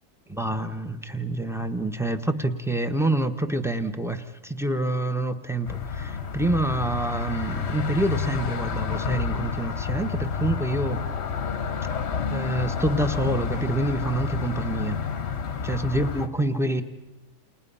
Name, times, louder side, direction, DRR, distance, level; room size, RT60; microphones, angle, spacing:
voice 1, 0.3-11.0 12.3-15.0 15.6-16.8, right 1 dB, ahead, 9 dB, 0.7 m, -27 dB
sound 1, 5.6-16.3, left 6 dB, 45° left, 1.1 m, -29 dB
29.0 x 29.0 x 5.6 m, 1.1 s
omnidirectional pair, 1.8 m